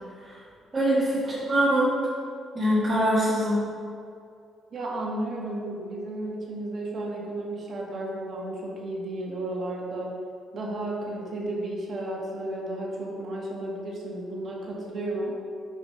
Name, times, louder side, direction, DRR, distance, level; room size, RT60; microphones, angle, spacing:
voice 1, 0.7-1.9 2.5-3.6, right 1 dB, 30° right, -9 dB, 1.6 m, -23 dB
voice 2, 4.7-10.2 10.5-15.3, right 1 dB, 55° right, -2 dB, 1.7 m, -33 dB
5.4 x 5.0 x 5.6 m, 2.4 s
cardioid pair, 90°, 0 cm